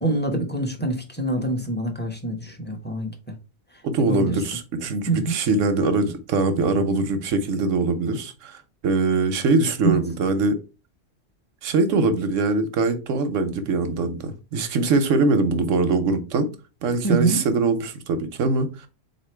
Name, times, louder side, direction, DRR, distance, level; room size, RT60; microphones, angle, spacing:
voice 1, 0.0-3.4 4.1-4.3 5.1-5.4 9.8-10.0 17.0-17.4, right 2 dB, 10° left, 0.9 m, -25 dB
voice 2, 3.8-10.6 11.6-16.5 16.8-18.7, right 3 dB, 90° right, 1.1 m, -22 dB
3.9 x 3.0 x 4.4 m
omnidirectional pair, 1.3 m